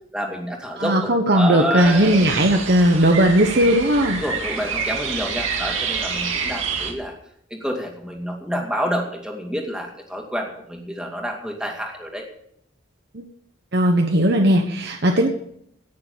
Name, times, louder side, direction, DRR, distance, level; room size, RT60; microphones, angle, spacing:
voice 1, 0.1-2.3 4.1-7.1 7.5-12.2, equal, 5° right, 0 dB, 2.3 m, -28 dB
voice 2, 0.8-4.2 13.1-13.2 13.7-15.3, right 1 dB, 50° right, 2 dB, 1.2 m, -17 dB
sound 1, 1.8-6.9, right 5 dB, 75° right, 2.2 m, -27 dB
17.5 x 6.9 x 6.8 m, 0.71 s
head